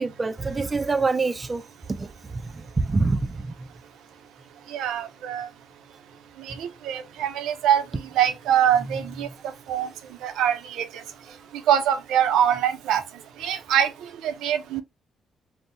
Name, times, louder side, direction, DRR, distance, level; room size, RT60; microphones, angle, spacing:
voice 1, 0.0-1.6 1.9-2.1 2.3-3.4 8.9-9.0, right 3 dB, 25° right, 0.3 m, -25 dB
voice 2, 4.7-5.5 6.6-7.8 8.2-9.3 9.7-9.9 10.2-10.8 11.7-13.0 13.4-13.9 14.2-14.8, right 9 dB, 85° right, 0.5 m, -23 dB
3.5 x 2.0 x 2.6 m
cardioid pair, 90°, 0 cm